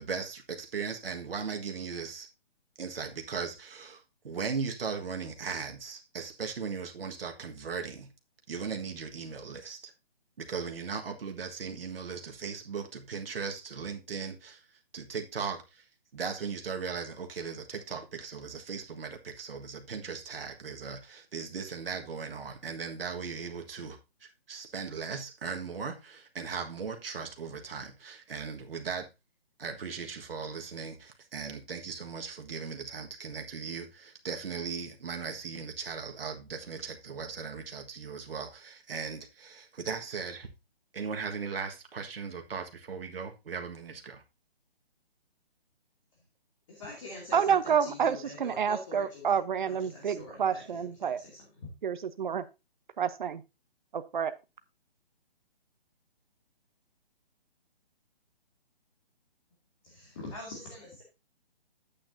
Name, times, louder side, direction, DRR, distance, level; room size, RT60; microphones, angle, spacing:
voice 1, 0.0-2.3 2.8-8.1 8.5-9.9 10.4-14.6 14.9-15.8 16.1-29.1 29.6-40.5 40.9-44.2, right 5 dB, 65° right, 1.6 m, -38 dB
voice 2, 46.7-49.4 49.6-51.5 59.8-61.0, left 2 dB, 30° left, 2.5 m, -44 dB
voice 3, 47.3-51.2 51.8-52.4 53.0-53.4 53.9-54.3, right 7 dB, 50° right, 0.9 m, -29 dB
9.8 x 8.6 x 2.7 m
hypercardioid pair, 170°, 30 cm